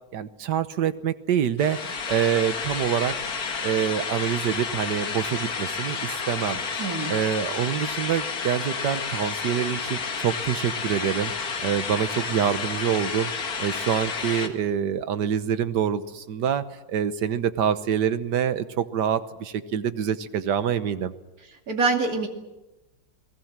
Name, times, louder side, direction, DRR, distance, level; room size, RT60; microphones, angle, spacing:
voice 1, 0.1-3.1 3.6-6.6 7.1-11.3 11.6-13.3 13.6-21.1, right 9 dB, 70° right, 12 dB, 1.6 m, -26 dB
sound 1, 1.6-14.5, left 5 dB, 55° left, 2.1 m, -31 dB
voice 2, 6.8-7.2 21.7-22.3, right 4 dB, 50° right, 3 dB, 2.9 m, -24 dB
29.5 x 19.5 x 7.4 m, 1.0 s
omnidirectional pair, 2.0 m